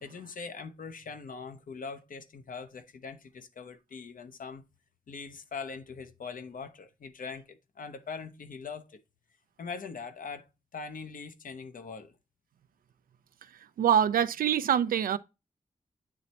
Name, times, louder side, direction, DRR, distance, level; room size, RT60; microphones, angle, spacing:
voice 1, 0.0-4.6 5.1-9.0 9.6-10.4 10.7-12.1, left 5 dB, 75° left, 0.8 m, -42 dB
voice 2, 13.5-15.2, right 9 dB, 90° right, 0.4 m, -25 dB
8.6 x 3.2 x 4.1 m
cardioid pair, 50°, 14 cm